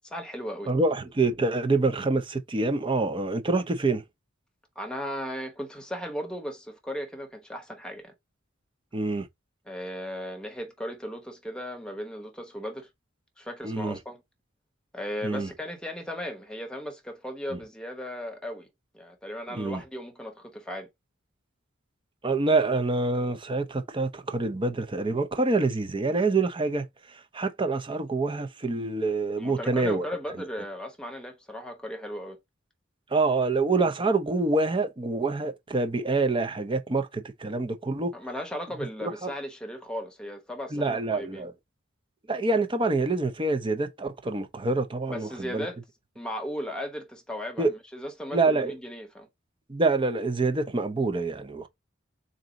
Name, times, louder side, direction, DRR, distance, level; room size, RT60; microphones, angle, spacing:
voice 1, 0.0-0.7 4.8-8.1 9.7-12.9 13.4-14.2 14.9-18.7 18.9-20.9 29.4-32.4 38.1-41.5 45.1-45.8 46.2-49.3, equal, 5° left, 0.9 m, -36 dB
voice 2, 0.7-4.0 8.9-9.3 13.6-14.0 15.2-15.5 19.5-19.8 22.2-30.1 30.4-30.5 33.1-38.1 39.0-39.3 40.7-41.5 42.3-45.7 47.6-47.7 48.3-48.7 49.7-51.7, right 3 dB, 25° right, 0.6 m, -26 dB
3.9 x 2.7 x 3.9 m
head